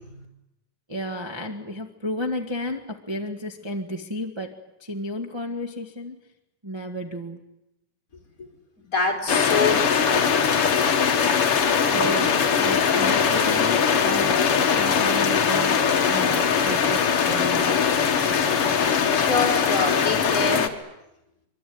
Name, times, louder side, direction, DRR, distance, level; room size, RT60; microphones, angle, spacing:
voice 1, 0.9-6.2 6.6-7.4 11.8-14.4 14.7-17.8, equal, 15° right, 0 dB, 1.2 m, -32 dB
voice 2, 8.8-10.4 19.1-20.7, left 3 dB, 25° left, 2 dB, 5.1 m, -26 dB
sound 1, 9.3-20.7, left 7 dB, 50° left, 2.4 m, -21 dB
25.0 x 24.5 x 9.6 m, 0.89 s
omnidirectional pair, 3.7 m